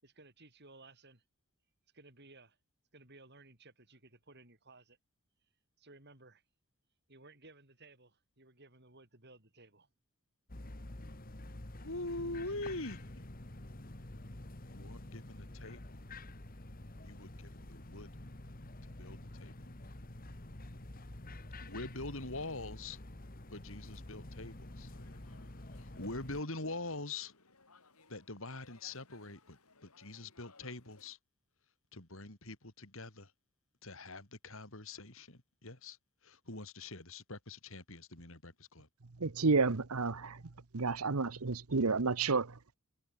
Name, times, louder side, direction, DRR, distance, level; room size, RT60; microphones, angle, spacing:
voice 1, 0.0-1.2 1.9-2.6 2.9-5.0 5.8-6.4 7.1-9.9 12.5-12.6, right 2 dB, 50° right, 6.1 m, -58 dB
sound 1, 10.5-26.4, left 1 dB, 40° left, 1.8 m, -48 dB
voice 2, 11.8-13.3 14.7-16.0 17.0-18.1 19.0-19.7 21.6-23.0 23.5-24.9 25.7-27.3 28.1-31.2 31.9-33.3 33.8-38.9, left 2 dB, 60° left, 4.0 m, -44 dB
sound 2, 24.9-31.1, left 3 dB, 80° left, 6.9 m, -63 dB
voice 3, 39.2-40.4 40.7-42.7, right 4 dB, 75° right, 1.0 m, -31 dB
head